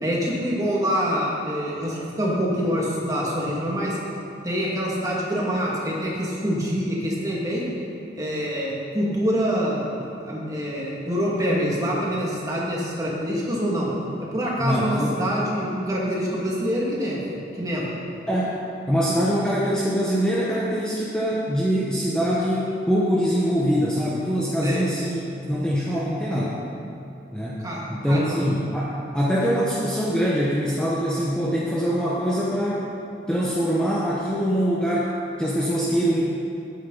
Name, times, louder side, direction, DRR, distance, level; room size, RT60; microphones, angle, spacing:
voice 1, 0.0-4.0 4.4-7.7 8.2-9.8 10.2-13.9 14.2-17.2 17.6-17.9 24.6-24.8 27.6-28.5, equal, 20° right, -5 dB, 1.9 m, -25 dB
voice 2, 14.6-15.2 18.3-18.5 18.9-25.2 25.5-26.6 27.3-27.6 27.9-32.9 33.3-35.1 35.4-36.2, equal, 5° left, -7 dB, 0.9 m, -23 dB
12.5 x 9.0 x 3.9 m, 2.6 s
head